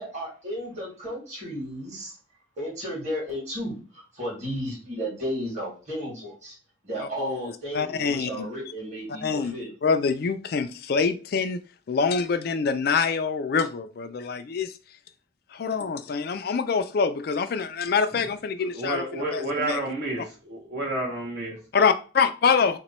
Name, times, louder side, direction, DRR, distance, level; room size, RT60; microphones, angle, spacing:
voice 1, 0.0-2.2 2.6-6.5 6.8-9.7, equal, 35° right, 1.6 m, -34 dB
voice 2, 7.0-8.5 9.2-9.5 9.8-11.6 11.9-14.7 15.6-19.8 21.7-22.8, left 5 dB, 50° left, 0.3 m, -25 dB
voice 3, 18.7-21.6, right 1 dB, 50° right, 0.9 m, -30 dB
3.0 x 2.2 x 4.1 m
head